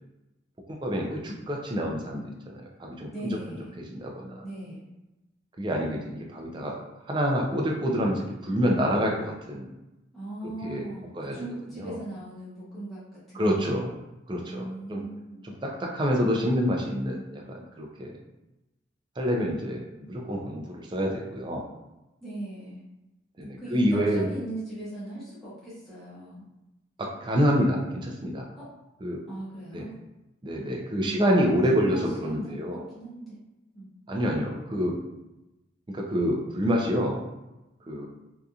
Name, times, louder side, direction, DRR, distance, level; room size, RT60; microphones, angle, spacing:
voice 1, 0.7-3.4 3.8-4.4 5.6-6.8 7.1-9.7 10.6-10.9 11.1-11.4 11.8-12.0 13.3-13.9 14.3-15.0 15.4-18.1 19.2-21.6 23.4-24.3 27.0-28.4 29.0-29.2 29.7-29.9 30.4-32.8 34.1-35.0 35.9-37.2 37.9-38.1, equal, 25° right, -1 dB, 0.4 m, -27 dB
voice 2, 3.1-3.8 4.4-4.9 10.1-13.8 14.4-15.4 22.2-22.9 23.6-26.5 28.6-28.7 29.3-29.9 30.9-31.4 31.7-32.5 32.9-33.4 33.7-33.9, right 1 dB, ahead, -12 dB, 0.7 m, -39 dB
2.7 x 2.4 x 2.3 m, 0.98 s
head